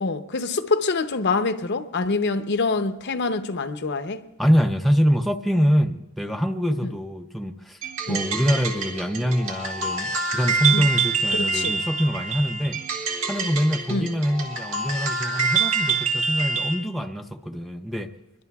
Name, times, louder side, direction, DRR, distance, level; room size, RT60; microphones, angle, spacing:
voice 1, 0.0-4.2 8.1-8.2 10.7-10.9 11.3-11.7 13.9-14.1, left 3 dB, 55° left, 0.7 m, -25 dB
voice 2, 4.4-7.8 8.1-12.8 13.3-18.1, equal, ahead, 0.5 m, -24 dB
sound 1, 7.8-16.8, right 4 dB, 75° right, 1.6 m, -26 dB
24.0 x 21.5 x 2.3 m
head